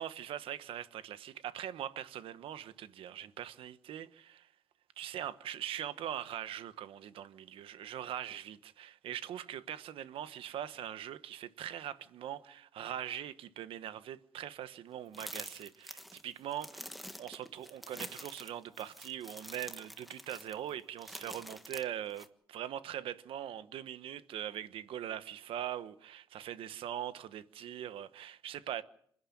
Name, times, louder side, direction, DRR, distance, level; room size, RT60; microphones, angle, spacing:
voice 1, 0.0-4.5 5.0-28.8, right 10 dB, 85° right, 1.2 m, -42 dB
sound 1, 15.1-22.3, equal, ahead, 1.4 m, -47 dB
27.0 x 11.0 x 9.9 m
cardioid pair, 120°, 9 cm